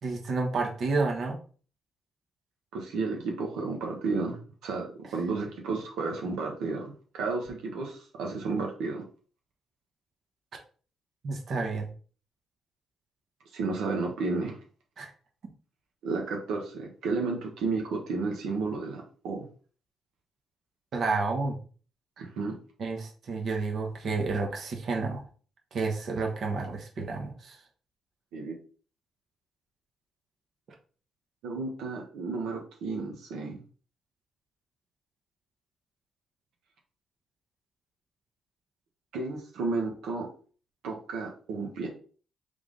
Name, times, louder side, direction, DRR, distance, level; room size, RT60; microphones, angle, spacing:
voice 1, 0.0-1.4 11.2-11.9 15.0-15.1 20.9-21.6 22.2-22.3 22.8-25.2 25.7-27.6, right 3 dB, 60° right, 1 dB, 1.1 m, -30 dB
voice 2, 2.7-4.9 5.1-9.0 13.5-14.6 16.0-19.5 22.2-22.6 28.3-28.6 31.4-33.6 39.1-40.3 40.8-41.9, right 3 dB, 85° right, 0 dB, 0.9 m, -32 dB
3.5 x 3.5 x 3.8 m, 0.41 s
cardioid pair, 90°, 0 cm